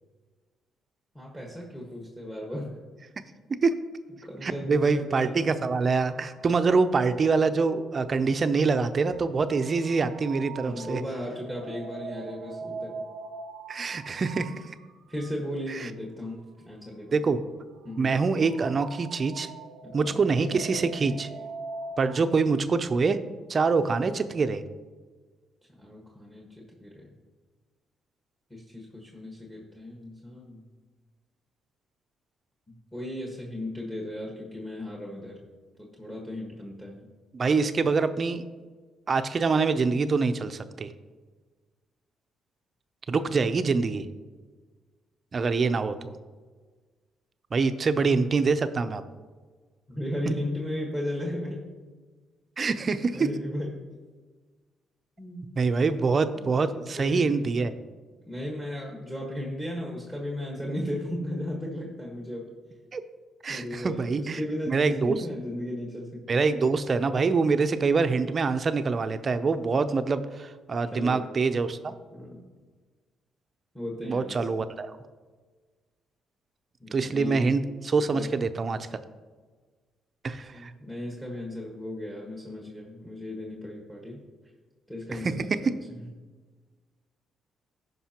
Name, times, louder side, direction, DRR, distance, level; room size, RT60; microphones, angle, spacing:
voice 1, 1.1-2.8 4.2-5.4 10.6-13.0 15.1-17.2 17.8-18.1 19.8-20.6 25.8-27.1 28.5-30.6 32.7-35.4 35.8-37.1 43.3-43.4 49.9-51.7 52.6-52.7 53.1-53.8 55.2-55.5 56.4-57.4 58.2-62.5 63.5-66.4 70.9-71.3 72.1-72.4 73.7-74.6 76.8-77.5 78.1-78.3 80.4-84.2 84.9-85.8, left 1 dB, 10° left, -2 dB, 1.5 m, -36 dB
voice 2, 4.4-11.0 13.7-14.5 15.7-15.9 17.1-17.4 18.0-19.5 19.9-21.3 22.0-23.2 23.5-24.6 37.3-38.4 39.1-40.9 43.1-44.1 45.3-46.2 47.5-49.0 52.6-53.3 55.6-57.7 62.9-63.0 63.4-64.4 64.7-65.2 66.3-71.9 74.1-75.0 76.9-78.8 80.2-80.7 85.1-85.4, right 4 dB, 40° right, 10 dB, 0.5 m, -25 dB
sound 1, 6.1-15.4 16.1-16.3 17.8-22.2, right 4 dB, 90° right, 0.5 m, -43 dB
15.5 x 5.3 x 2.9 m, 1.4 s
cardioid pair, 90°, 0 cm